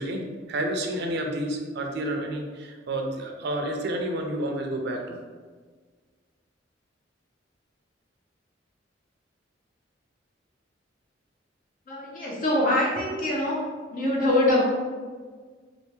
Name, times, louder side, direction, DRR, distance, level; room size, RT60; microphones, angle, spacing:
voice 1, 0.0-5.2, right 1 dB, 65° right, 3 dB, 0.4 m, -30 dB
voice 2, 11.9-13.6 13.9-14.6, left 1 dB, 50° left, -4 dB, 0.8 m, -24 dB
3.3 x 2.4 x 3.0 m, 1.5 s
head